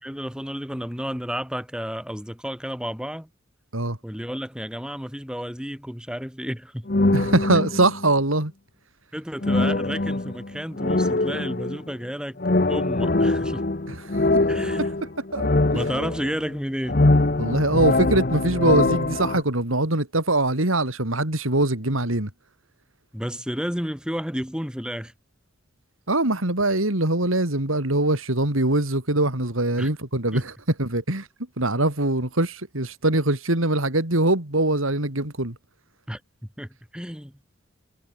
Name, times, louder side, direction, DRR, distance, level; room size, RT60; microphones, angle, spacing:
voice 1, 0.0-3.3 4.0-6.9 7.5-7.9 9.1-13.6 14.5-15.0 15.7-17.0 23.1-25.1 29.8-29.9 30.3-30.4 36.1-36.2 36.6-37.3, equal, 5° right, 3.4 m, -32 dB
sound 1, 6.9-8.1 9.4-11.9 12.4-16.5 16.9-19.4, left 2 dB, 45° left, 0.9 m, -23 dB
voice 2, 7.1-8.5 13.9-14.4 14.8-14.9 15.3-15.5 17.4-22.3 26.1-30.5 30.8-31.3 31.6-35.6, right 2 dB, 85° right, 3.8 m, -23 dB
head